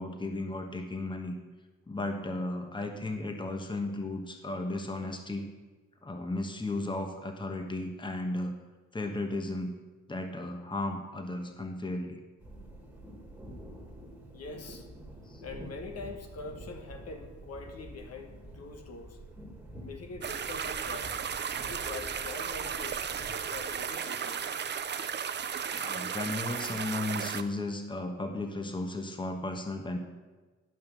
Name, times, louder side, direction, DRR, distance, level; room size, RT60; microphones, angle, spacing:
voice 1, 0.0-1.3 1.9-5.5 6.0-8.5 8.9-9.7 10.1-12.2 15.3-15.4 25.8-30.0, left 2 dB, 15° left, 5 dB, 1.2 m, -35 dB
sound 1, 12.4-23.8, right 1 dB, 5° right, 2.0 m, -48 dB
voice 2, 14.3-14.9 15.4-19.2 19.7-21.1 21.5-24.4 25.9-26.1, left 3 dB, 55° left, 5 dB, 1.3 m, -44 dB
sound 2, 20.2-27.4, right 7 dB, 35° right, 0.6 m, -35 dB
11.5 x 5.6 x 6.8 m, 1.3 s
cardioid pair, 90°, 30 cm